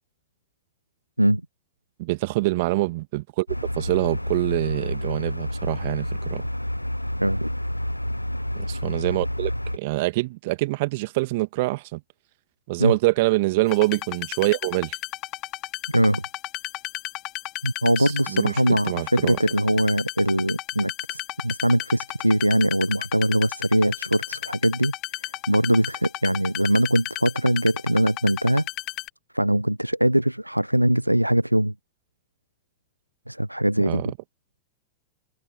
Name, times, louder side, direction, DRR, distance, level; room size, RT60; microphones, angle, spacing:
voice 1, 2.0-3.5 3.8-6.4 8.5-12.0 12.7-15.0 18.0-19.5 33.8-34.1, right 21 dB, 50° right, 2.1 m, -25 dB
sound 1, 3.5-9.8, left 1 dB, 90° left, 0.8 m, -29 dB
voice 2, 7.2-7.5 12.8-12.9 15.9-16.2 17.6-24.9 25.2-28.7 29.3-31.7 33.3-34.0, right 1 dB, 90° right, 0.5 m, -22 dB
sound 2, 13.7-29.1, left 19 dB, 40° left, 2.5 m, -33 dB
open air
figure-of-eight pair, 90°, 0 cm